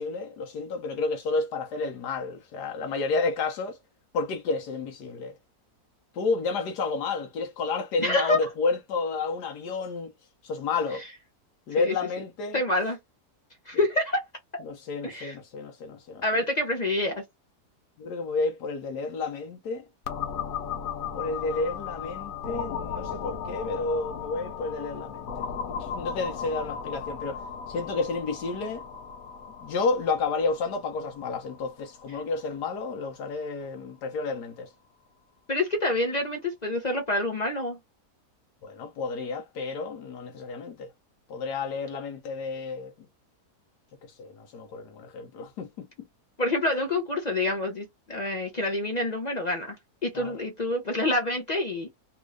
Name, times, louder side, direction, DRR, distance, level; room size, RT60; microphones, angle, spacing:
voice 1, 0.0-3.8 4.1-5.3 6.1-10.1 10.4-11.0 11.7-12.6 13.7-13.8 14.6-16.2 18.0-19.9 21.1-27.4 27.7-28.8 29.6-34.7 38.6-40.9 41.3-42.9 44.2-45.9 50.1-50.4, left 4 dB, 80° left, 1.3 m, -31 dB
voice 2, 8.0-8.4 11.8-11.9 12.5-13.0 13.7-14.3 14.5-14.6 15.0-15.3 16.2-17.2 35.5-37.8 46.4-49.8 50.0-51.9, left 2 dB, 45° left, 0.6 m, -27 dB
sound 1, 20.1-33.6, left 7 dB, 65° left, 1.0 m, -36 dB
3.5 x 2.4 x 3.2 m
omnidirectional pair, 1.7 m